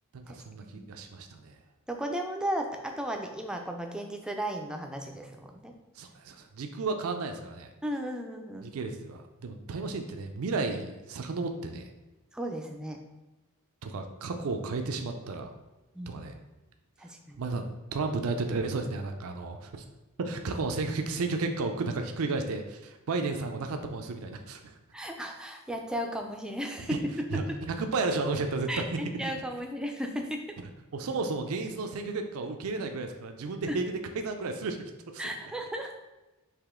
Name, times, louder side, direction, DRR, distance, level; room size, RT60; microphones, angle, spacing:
voice 1, 0.1-1.6 6.0-7.7 8.6-11.9 13.8-15.5 16.1-16.4 17.4-17.6 17.9-19.8 20.2-24.7 26.9-27.0 27.3-28.8 29.2-29.3 30.9-34.8 35.1-35.3, right 3 dB, 70° right, 5 dB, 0.4 m, -33 dB
voice 2, 1.9-5.7 7.8-8.7 12.3-13.0 15.9-16.1 17.0-17.4 24.9-27.4 28.7-30.4 33.7-33.8 35.2-35.9, equal, 5° right, 3 dB, 0.4 m, -35 dB
4.9 x 2.9 x 3.6 m, 1.1 s
head